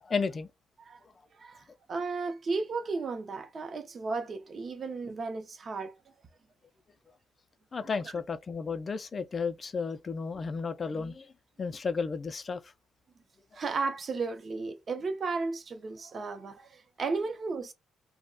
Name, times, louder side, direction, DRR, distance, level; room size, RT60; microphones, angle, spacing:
voice 1, 0.0-0.5 7.7-11.3 11.6-12.6, left 5 dB, 40° left, 0.3 m, -33 dB
voice 2, 1.4-5.9 13.5-17.7, right 4 dB, 45° right, 0.6 m, -34 dB
2.3 x 2.1 x 3.8 m
cardioid pair, 80°, 0 cm